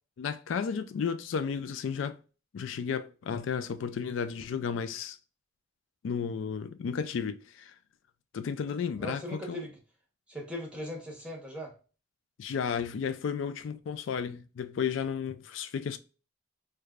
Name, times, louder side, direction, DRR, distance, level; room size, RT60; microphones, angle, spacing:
voice 1, 0.2-2.2 2.5-5.2 6.0-7.8 8.3-9.7 12.4-16.0, left 6 dB, 80° left, 0.3 m, -33 dB
voice 2, 9.0-9.8 10.3-11.7, equal, 5° right, 1.0 m, -39 dB
4.7 x 2.2 x 2.3 m
head